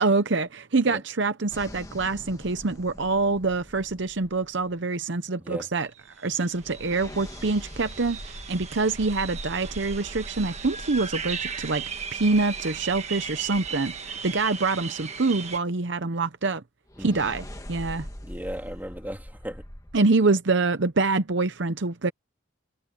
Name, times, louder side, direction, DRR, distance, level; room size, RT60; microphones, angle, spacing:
voice 1, 0.0-5.9 6.2-11.8 12.1-16.6 17.0-18.1 19.9-22.1, right 3 dB, 55° right, 0.8 m, -25 dB
sound 1, 1.5-5.0 6.6-14.6 16.9-20.0, equal, 15° left, 1.6 m, -43 dB
sound 2, 5.9-6.0 6.2-15.6, right 6 dB, 30° right, 1.5 m, -37 dB
voice 2, 17.0-17.3 18.2-19.6, equal, 10° right, 3.3 m, -37 dB
head